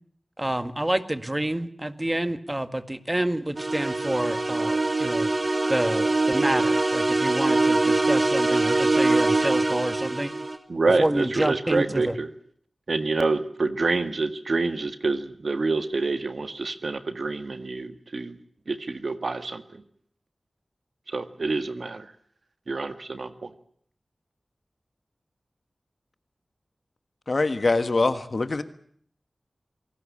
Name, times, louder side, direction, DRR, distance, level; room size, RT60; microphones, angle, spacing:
voice 1, 0.4-5.3 5.7-10.3 11.0-12.1, right 1 dB, 20° right, 10 dB, 1.9 m, -28 dB
sound 1, 3.6-10.6, right 2 dB, 50° right, 3.1 m, -23 dB
voice 2, 10.7-12.3 12.9-18.3 18.7-19.6 21.1-22.1 22.7-23.5, right 3 dB, 70° right, 9 dB, 1.8 m, -27 dB
voice 3, 27.3-28.6, left 3 dB, 60° left, 11 dB, 1.6 m, -23 dB
27.0 x 18.0 x 8.7 m, 0.65 s
cardioid pair, 45°, 0 cm